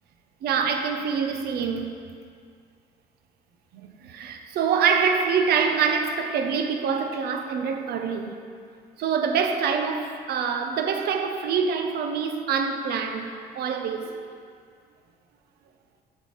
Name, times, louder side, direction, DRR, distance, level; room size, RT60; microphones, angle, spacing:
voice 1, 0.4-1.9 4.0-8.3 9.0-14.2, right 6 dB, 70° right, 5 dB, 0.7 m, -25 dB
8.0 x 3.6 x 6.3 m, 2.2 s
cardioid pair, 110°, 17 cm